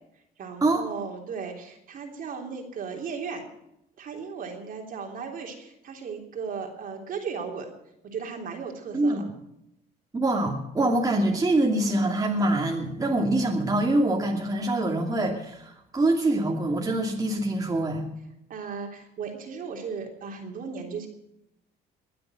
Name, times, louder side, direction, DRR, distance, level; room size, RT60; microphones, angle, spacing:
voice 1, 0.4-3.5 4.0-7.7 8.0-9.2 18.5-21.1, right 5 dB, 55° right, 2 dB, 3.3 m, -36 dB
voice 2, 8.9-9.3 10.1-18.0, right 2 dB, 20° right, 0 dB, 2.6 m, -24 dB
21.5 x 7.7 x 7.5 m, 0.81 s
cardioid pair, 110°, 17 cm